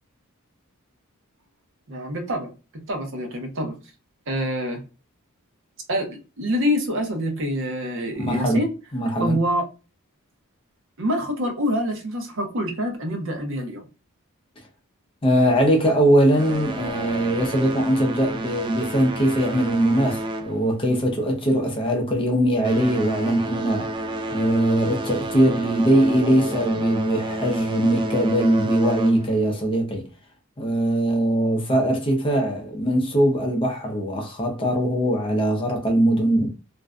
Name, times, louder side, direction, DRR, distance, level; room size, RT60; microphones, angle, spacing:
voice 1, 1.9-3.8 4.3-4.8 5.9-8.7 9.2-9.6 11.0-13.9, equal, 60° right, 0.7 m, -26 dB
voice 2, 8.2-8.6 8.9-9.4 15.2-23.9 24.3-30.1 30.6-36.5, right 1 dB, 25° left, 0.6 m, -21 dB
sound 1, 16.3-21.2 21.5-21.8 22.4-29.5, right 1 dB, 20° right, 0.3 m, -31 dB
2.5 x 2.1 x 2.3 m
head